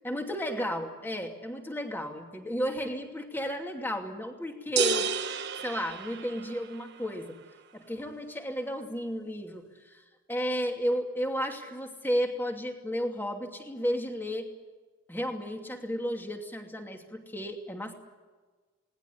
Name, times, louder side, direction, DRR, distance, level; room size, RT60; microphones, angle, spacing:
voice 1, 0.0-5.1 5.6-7.4 7.7-10.0 10.3-14.5 15.1-17.9, equal, 10° left, 3 dB, 2.6 m, -33 dB
sound 1, 4.8-6.8, right 6 dB, 55° right, 1.4 m, -31 dB
19.5 x 19.0 x 9.8 m, 1.3 s
head